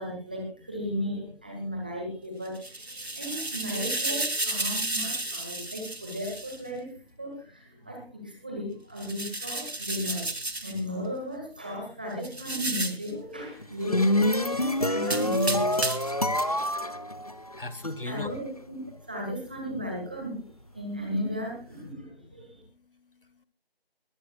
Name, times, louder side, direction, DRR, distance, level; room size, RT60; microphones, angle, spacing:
voice 1, 0.0-6.9 7.2-15.7 18.1-18.8 19.1-20.5 20.7-22.6, equal, 10° right, 0 dB, 1.7 m, -35 dB
sound 1, 2.5-6.6 9.0-10.8 12.2-13.1 15.0-16.2, right 2 dB, 80° right, 2.3 m, -32 dB
sound 2, 13.6-17.9, left 1 dB, 35° left, 0.7 m, -26 dB
voice 2, 17.6-18.4 22.0-22.1 22.4-23.5, left 2 dB, 60° left, 15 dB, 1.3 m, -40 dB
22.0 x 17.0 x 2.3 m, 0.34 s
figure-of-eight pair, 170°, 31 cm